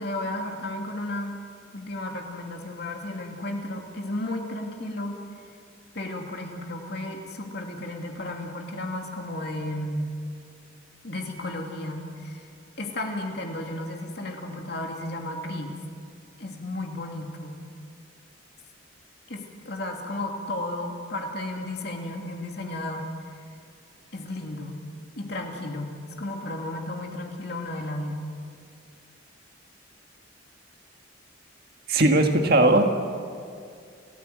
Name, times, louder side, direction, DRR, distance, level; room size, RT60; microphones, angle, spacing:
voice 1, 0.0-1.4 1.7-5.2 5.9-10.1 11.0-12.5 12.8-15.8 16.4-17.6 19.3-23.1 24.1-24.8 25.2-25.9 26.2-28.3, left 1 dB, 55° left, 1 dB, 2.8 m, -33 dB
voice 2, 31.9-33.0, right 2 dB, 50° right, 4 dB, 1.9 m, -19 dB
29.0 x 15.0 x 7.8 m, 2.3 s
head